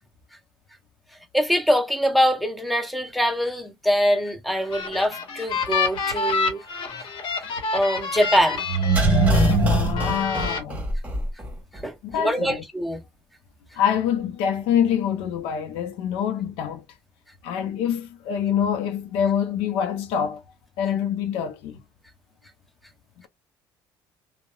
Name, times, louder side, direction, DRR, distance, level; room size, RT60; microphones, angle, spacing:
voice 1, 1.3-6.6 7.7-8.6 11.8-13.0, equal, ahead, 0.7 m, -23 dB
sound 1, 4.5-9.6 10.0-10.6, left 4 dB, 65° left, 0.9 m, -28 dB
sound 2, 8.7-11.5 11.8-11.9, right 1 dB, 15° right, 1.2 m, -21 dB
voice 2, 9.5-10.8 12.0-12.6 13.8-16.8 17.4-20.4 20.8-21.8, left 8 dB, 80° left, 0.5 m, -25 dB
2.8 x 2.0 x 2.3 m
supercardioid pair, 80°, 9 cm